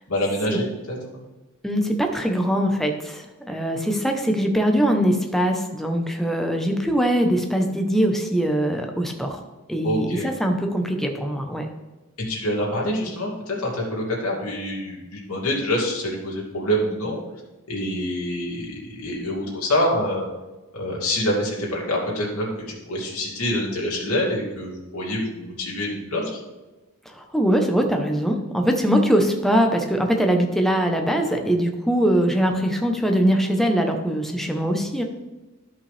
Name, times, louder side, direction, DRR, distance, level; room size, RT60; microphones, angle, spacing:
voice 1, 0.1-1.0 9.8-10.2 12.3-17.2 17.7-20.2 20.7-26.4, equal, 80° left, -4 dB, 2.7 m, -26 dB
voice 2, 1.6-9.4 9.7-11.7 27.1-35.0, equal, ahead, 3 dB, 0.8 m, -22 dB
12.5 x 5.6 x 3.3 m, 1.1 s
head